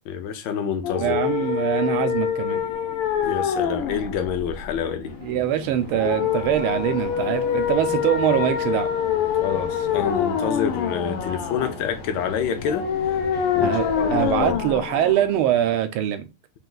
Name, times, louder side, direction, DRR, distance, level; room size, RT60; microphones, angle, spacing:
voice 1, 0.0-1.2 3.2-5.1 9.4-13.2 13.5-14.6, left 7 dB, 65° left, 1.3 m, -27 dB
sound 1, 0.8-15.8, left 8 dB, 90° left, 1.6 m, -26 dB
voice 2, 1.0-2.6 5.2-8.9 13.6-16.2, right 11 dB, 80° right, 1.5 m, -23 dB
sound 2, 5.0-14.4, left 3 dB, 45° left, 0.6 m, -38 dB
4.1 x 2.5 x 3.8 m
omnidirectional pair, 2.4 m